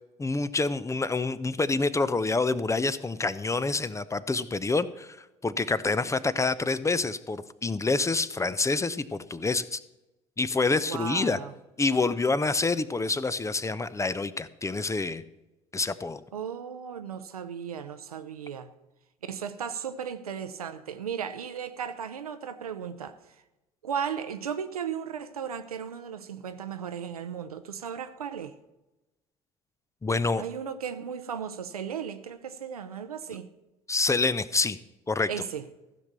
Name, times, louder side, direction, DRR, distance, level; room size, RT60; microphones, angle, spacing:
voice 1, 0.2-5.2 5.4-9.8 10.4-11.4 11.8-15.2 15.7-16.2 30.0-30.4 33.9-34.8 35.1-35.3, left 3 dB, 15° left, 0.6 m, -27 dB
voice 2, 10.9-11.5 16.3-18.7 19.2-23.2 23.8-28.5 30.4-33.5 35.3-35.7, right 7 dB, 85° right, 0.7 m, -35 dB
15.0 x 6.0 x 6.8 m
figure-of-eight pair, 60°, 18 cm